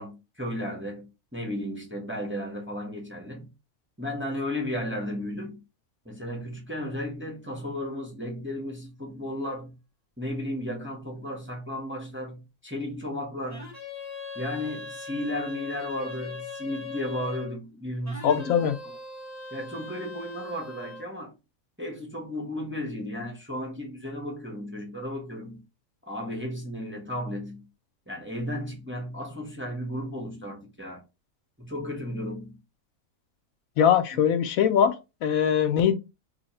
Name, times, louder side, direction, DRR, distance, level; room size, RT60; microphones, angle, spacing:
voice 1, 0.0-3.5 4.0-5.6 6.0-9.7 10.2-13.7 14.3-18.6 19.5-21.4 21.8-25.6 26.1-27.7 28.1-31.0 31.6-32.6 34.1-34.2, left 1 dB, 15° right, 0.4 m, -34 dB
sound 1, 13.5-17.5 18.0-21.1, left 3 dB, 15° left, 0.7 m, -40 dB
voice 2, 18.2-18.7 33.8-34.9 35.2-35.9, left 8 dB, 75° left, 1.0 m, -21 dB
2.8 x 2.7 x 4.1 m
omnidirectional pair, 1.5 m